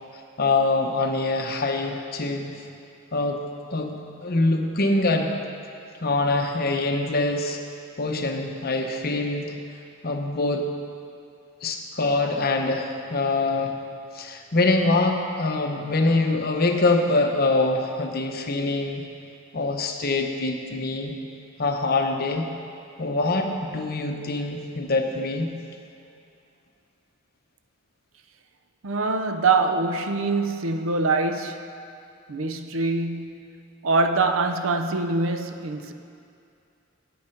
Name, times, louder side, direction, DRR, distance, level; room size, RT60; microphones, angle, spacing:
voice 1, 0.4-2.6 3.1-3.4 3.7-4.0 4.2-5.3 6.0-7.6 8.0-9.6 10.0-10.7 11.6-13.8 14.1-19.1 19.5-21.2 21.6-22.5 23.0-25.5, left 2 dB, 50° left, 0.9 m, -24 dB
voice 2, 28.8-31.6 32.3-33.5 33.8-35.9, right 3 dB, 70° right, 0.6 m, -24 dB
9.5 x 8.5 x 5.8 m
head